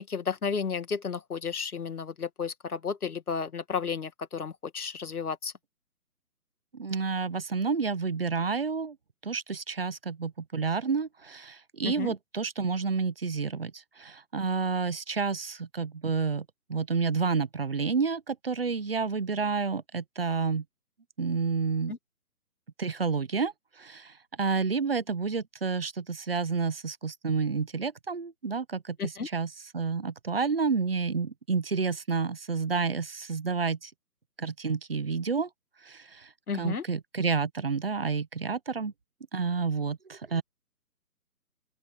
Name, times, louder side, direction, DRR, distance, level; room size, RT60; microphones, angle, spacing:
voice 1, 0.0-5.5 11.8-12.1 21.9-22.0 29.0-29.3 36.5-36.8, left 6 dB, 70° left, 2.0 m, -33 dB
voice 2, 6.8-8.9 9.2-16.4 16.7-20.6 21.2-21.9 22.8-23.5 23.8-29.5 29.7-33.9 34.4-35.5 35.8-36.3 36.6-38.9 39.3-40.4, right 5 dB, 40° right, 1.0 m, -30 dB
open air
hypercardioid pair, 170°, 47 cm